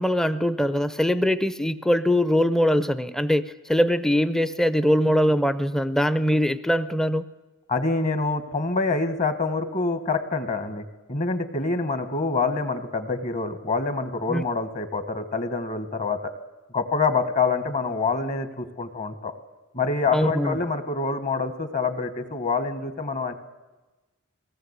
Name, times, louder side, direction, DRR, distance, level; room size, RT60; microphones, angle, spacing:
voice 1, 0.0-7.3 14.3-14.4 20.1-20.6, equal, ahead, 14 dB, 0.6 m, -22 dB
voice 2, 7.7-10.8 11.1-16.3 16.7-19.3 19.7-23.3, left 4 dB, 35° left, 10 dB, 1.4 m, -26 dB
21.5 x 17.5 x 8.1 m, 1.1 s
head